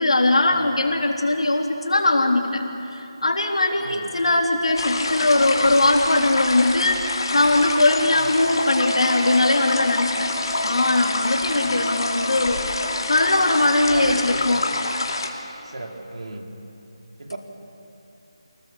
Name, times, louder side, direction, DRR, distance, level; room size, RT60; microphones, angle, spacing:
voice 1, 0.0-2.6 2.9-10.3 10.6-14.7, left 2 dB, 80° left, 1 dB, 3.6 m, -20 dB
voice 2, 3.7-4.1 8.2-8.3 11.5-11.9 13.9-14.6 15.6-16.5 17.2-17.4, right 2 dB, 80° right, 2 dB, 3.5 m, -35 dB
sound 1, 4.8-15.3, left 3 dB, 55° left, 2.8 m, -27 dB
Wind instrument woodwind instrument, 8.3-13.0, equal, 50° right, 7.9 m, -32 dB
29.0 x 20.0 x 7.2 m, 2.8 s
figure-of-eight pair, 170°, 3 cm